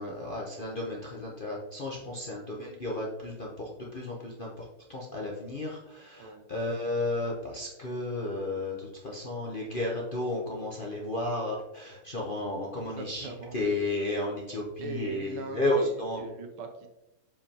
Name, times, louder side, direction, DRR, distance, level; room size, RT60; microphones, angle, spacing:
voice 1, 0.0-16.2, left 2 dB, 70° left, -3 dB, 0.5 m, -33 dB
voice 2, 13.0-13.6 14.8-16.9, right 4 dB, 80° right, 5 dB, 1.8 m, -40 dB
7.4 x 5.0 x 2.9 m, 0.96 s
omnidirectional pair, 2.4 m